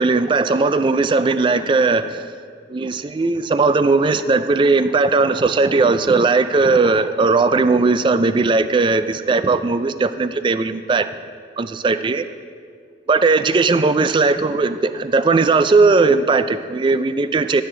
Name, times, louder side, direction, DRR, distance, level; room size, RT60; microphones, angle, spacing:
voice 1, 0.0-2.2 2.7-11.1 11.6-12.2 13.1-17.6, right 3 dB, 25° right, 12 dB, 0.3 m, -17 dB
14.5 x 7.9 x 3.8 m, 2.2 s
head